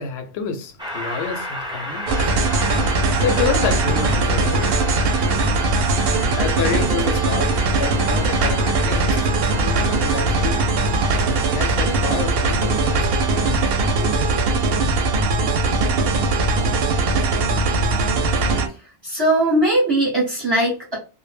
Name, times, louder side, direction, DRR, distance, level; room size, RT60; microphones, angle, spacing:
voice 1, 0.0-2.7 3.2-4.9 5.3-5.4 6.3-9.2 9.6-10.7 11.5-13.2 14.0-14.2, left 5 dB, 70° left, 0.8 m, -28 dB
Train, 0.8-14.2, equal, 5° right, 0.3 m, -33 dB
sound 1, 2.1-18.7, right 3 dB, 65° right, 0.7 m, -20 dB
voice 2, 19.0-21.0, right 1 dB, 25° right, 0.7 m, -19 dB
2.0 x 2.0 x 3.2 m
omnidirectional pair, 1.2 m